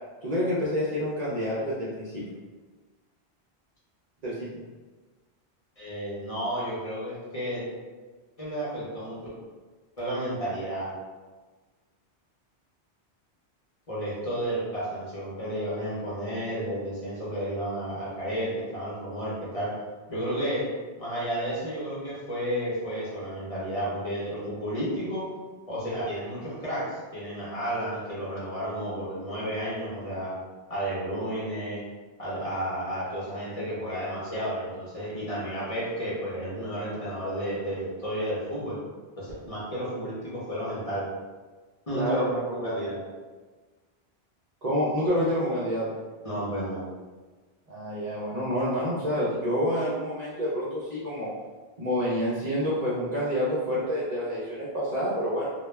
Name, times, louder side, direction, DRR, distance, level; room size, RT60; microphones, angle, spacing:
voice 1, 0.2-2.2 4.2-4.5 41.9-42.4 42.7-42.8 44.6-45.9 47.7-51.3 51.8-55.5, equal, 50° right, -8 dB, 0.5 m, -28 dB
voice 2, 5.8-7.7 8.4-9.2 10.0-10.9 13.9-19.7 20.1-20.7 21.0-25.3 25.7-30.3 30.7-31.8 32.2-38.8 39.2-41.1 41.9-43.0 46.2-46.8, equal, 40° left, -9 dB, 0.7 m, -32 dB
2.2 x 2.1 x 3.1 m, 1.3 s
omnidirectional pair, 1.1 m